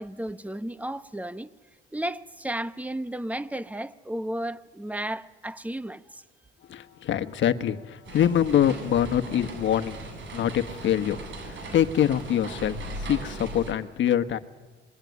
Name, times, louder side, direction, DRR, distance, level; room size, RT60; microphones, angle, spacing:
voice 1, 0.0-1.5 1.9-6.2, right 1 dB, 5° right, 1.1 m, -33 dB
voice 2, 6.7-10.0 10.3-14.4, left 10 dB, 70° left, 1.3 m, -25 dB
sound 1, 8.0-13.7, right 2 dB, 70° right, 7.6 m, -38 dB
27.0 x 21.0 x 9.8 m
cardioid pair, 90°, 20 cm